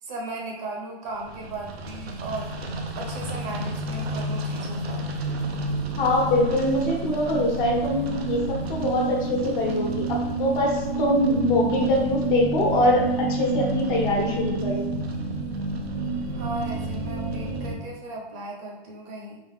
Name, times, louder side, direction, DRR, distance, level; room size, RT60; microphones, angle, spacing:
voice 1, 0.0-2.5 3.0-5.1 16.3-19.4, right 2 dB, 35° right, -1 dB, 0.8 m, -36 dB
sound 1, 1.2-17.8, right 2 dB, 85° right, 0.7 m, -29 dB
voice 2, 6.0-14.8, left 1 dB, 55° left, -1 dB, 1.2 m, -23 dB
3.8 x 2.4 x 3.6 m, 1.0 s
hypercardioid pair, 150°, 30 cm